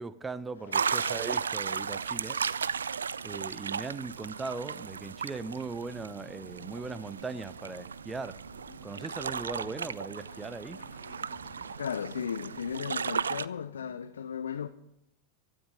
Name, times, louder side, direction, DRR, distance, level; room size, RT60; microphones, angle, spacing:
voice 1, 0.0-2.4 3.2-8.4 8.8-10.8, right 4 dB, 15° right, 0.9 m, -39 dB
sound 1, 0.7-13.5, right 6 dB, 70° right, 0.4 m, -35 dB
sound 2, 5.1-11.9, left 6 dB, 45° left, 2.2 m, -57 dB
voice 2, 11.8-14.7, left 7 dB, 65° left, 0.6 m, -36 dB
17.0 x 12.5 x 5.2 m
figure-of-eight pair, 90°, 0 cm